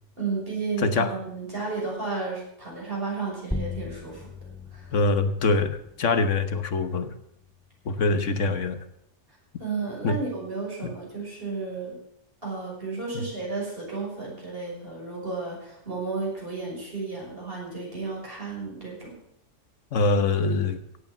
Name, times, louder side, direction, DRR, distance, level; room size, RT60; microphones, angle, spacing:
voice 1, 0.2-4.3 4.7-5.0 8.5-8.6 9.6-12.0 12.4-19.2, right 4 dB, 50° right, -3 dB, 6.4 m, -33 dB
sound 1, 3.5-8.6, left 2 dB, ahead, 0.7 m, -39 dB
voice 2, 4.9-7.1 7.8-8.8 10.0-10.2 10.8-10.9 13.1-13.2 19.9-20.8, left 3 dB, 80° left, 10 dB, 1.5 m, -24 dB
16.5 x 8.5 x 7.1 m, 0.74 s
omnidirectional pair, 1.3 m